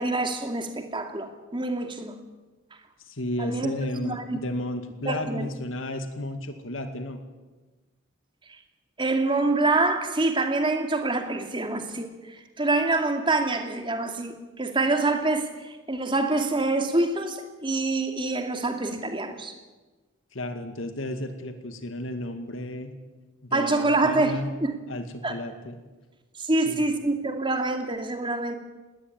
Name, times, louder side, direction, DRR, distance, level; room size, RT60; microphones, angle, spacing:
voice 1, 0.0-2.2 3.4-3.8 4.0-4.4 5.1-5.5 9.0-19.5 23.5-24.7 25.2-25.3 26.4-28.5, right 2 dB, 25° right, 6 dB, 2.4 m, -26 dB
voice 2, 3.0-7.2 20.3-22.9 23.4-24.5 24.9-25.8 26.7-26.8, left 1 dB, 75° left, 7 dB, 2.3 m, -33 dB
20.0 x 18.0 x 9.7 m, 1.2 s
head